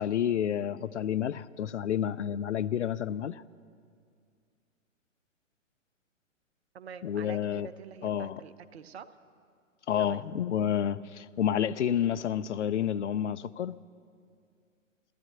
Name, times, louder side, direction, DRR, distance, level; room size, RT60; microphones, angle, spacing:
voice 1, 0.0-3.4 7.0-7.7 8.0-8.4 9.9-13.8, left 9 dB, 60° left, 0.5 m, -29 dB
voice 2, 6.7-9.1 10.0-10.3, right 7 dB, 50° right, 0.7 m, -46 dB
15.0 x 13.0 x 6.9 m
figure-of-eight pair, 120°, 40 cm